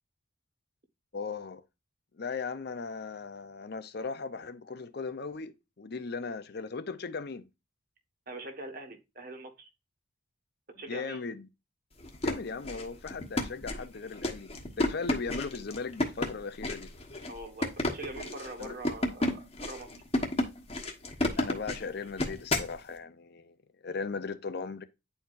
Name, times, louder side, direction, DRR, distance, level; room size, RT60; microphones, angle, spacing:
voice 1, 1.1-1.6 2.2-7.5 10.9-11.5 12.2-14.5 14.8-16.9 18.6-18.8 21.4-23.6 23.8-24.8, left 4 dB, 50° left, 0.6 m, -37 dB
voice 2, 8.3-9.7 10.8-11.2 17.3-19.9 21.3-21.4, right 2 dB, 45° right, 1.4 m, -43 dB
sound 1, 12.0-22.8, left 1 dB, 30° left, 1.2 m, -32 dB
9.7 x 4.5 x 2.5 m
head